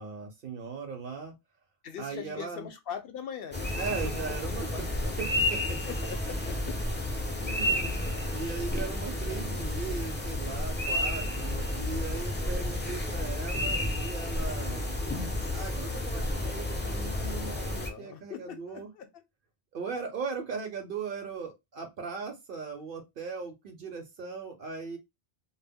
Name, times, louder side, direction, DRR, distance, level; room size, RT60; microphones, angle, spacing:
voice 1, 0.0-1.3 2.0-2.7 3.8-4.9 5.2-5.6 7.4-15.0 15.5-18.9 19.7-25.0, right 5 dB, 60° right, 0.7 m, -38 dB
voice 2, 1.8-3.7 4.7-5.2 5.8-6.7 17.8-19.1, left 8 dB, 65° left, 0.8 m, -41 dB
sound 1, 3.5-17.9, left 1 dB, 15° left, 0.4 m, -31 dB
2.1 x 2.0 x 3.4 m
omnidirectional pair, 1.1 m